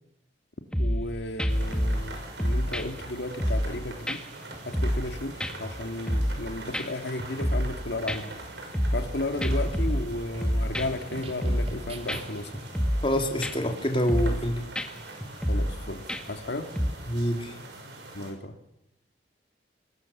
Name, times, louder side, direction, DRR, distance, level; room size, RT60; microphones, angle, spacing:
sound 1, 0.7-1.1 1.4-2.1 2.4-3.8 4.1-4.2 4.5-5.1 5.4-6.4 6.7-6.9 7.2-7.8 8.1-9.1 9.4-11.1 11.4-11.8 12.1-12.2 12.5-13.1 13.4-13.7 14.1-14.5 14.8-14.9 15.2-15.8 16.1-16.4 16.8-16.9, equal, 5° left, 1.6 m, -28 dB
voice 1, 0.8-4.2 4.6-8.4 8.9-12.6 15.5-16.7 18.1-18.6, left 2 dB, 75° left, 6 dB, 1.9 m, -34 dB
sound 2, 1.5-18.3, right 2 dB, 80° right, 6.3 m, -43 dB
sound 3, 9.0-12.6, equal, 35° right, 2.6 m, -42 dB
voice 2, 13.0-14.6 17.1-17.5, equal, 30° left, 4 dB, 3.0 m, -26 dB
25.5 x 20.0 x 7.2 m, 0.84 s
head